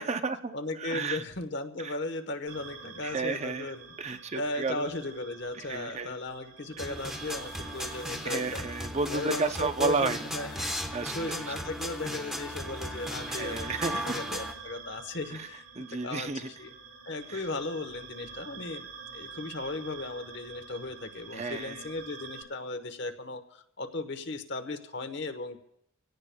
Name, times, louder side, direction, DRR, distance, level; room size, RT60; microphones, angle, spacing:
voice 1, 0.0-1.2 1.8-1.9 3.0-3.7 4.0-4.8 5.7-6.1 8.2-10.2 10.6-11.5 13.3-14.4 15.4-15.5 15.8-16.5 17.3-17.4 21.3-21.8, right 4 dB, 30° right, 8 dB, 0.6 m, -32 dB
voice 2, 0.5-8.7 9.1-10.7 11.1-16.7 17.1-25.6, left 2 dB, 55° left, 8 dB, 1.1 m, -37 dB
sound 1, 2.5-22.4, right 5 dB, 70° right, 2.9 m, -47 dB
sound 2, 6.8-14.5, equal, ahead, 1.0 m, -37 dB
26.5 x 17.0 x 2.3 m, 0.75 s
head